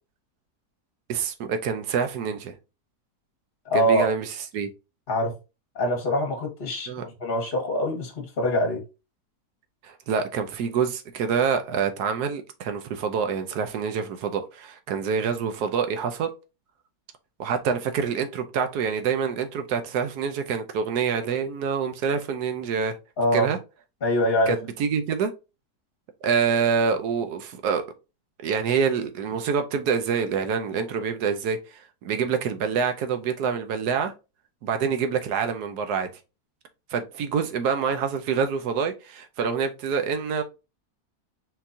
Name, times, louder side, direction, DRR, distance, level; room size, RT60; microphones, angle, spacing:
voice 1, 1.1-2.5 3.7-4.3 4.5-4.7 6.9-7.0 9.8-16.3 17.4-23.0 23.3-23.6 24.5-25.3 26.2-27.8 28.4-34.1 34.6-36.1 36.9-40.4, right 6 dB, 90° right, 1.3 m, -26 dB
voice 2, 3.6-4.1 5.1-5.3 5.7-8.8 23.2-23.5 24.0-24.6, equal, 35° left, 1.4 m, -24 dB
4.5 x 3.9 x 2.6 m
omnidirectional pair, 1.7 m